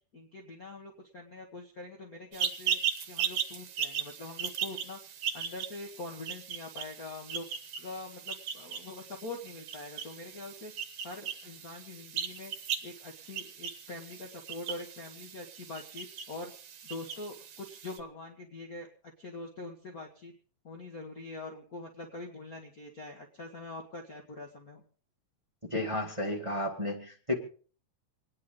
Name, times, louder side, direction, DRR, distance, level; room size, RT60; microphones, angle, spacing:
voice 1, 0.1-5.0 5.3-7.5 7.8-12.5 12.8-16.5 16.8-20.3 20.6-24.8, left 2 dB, 40° left, 1 dB, 1.4 m, -44 dB
sound 1, 2.3-18.0, right 8 dB, 65° right, 2.2 m, -38 dB
voice 2, 25.7-27.3, left 1 dB, 10° right, 0 dB, 1.8 m, -32 dB
28.0 x 9.8 x 3.9 m, 0.42 s
omnidirectional pair, 3.3 m